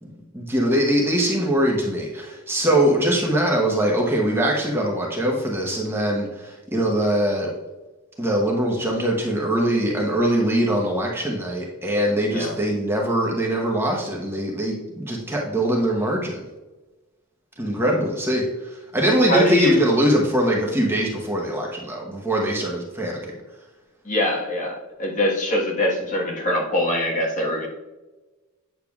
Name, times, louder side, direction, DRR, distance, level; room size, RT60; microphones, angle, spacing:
voice 1, 0.3-7.5 8.2-16.4 17.6-23.3, right 1 dB, 10° right, -2 dB, 1.0 m, -22 dB
voice 2, 19.3-19.8 24.0-27.7, left 1 dB, 35° left, -2 dB, 1.4 m, -22 dB
8.7 x 6.6 x 2.4 m, 1.1 s
head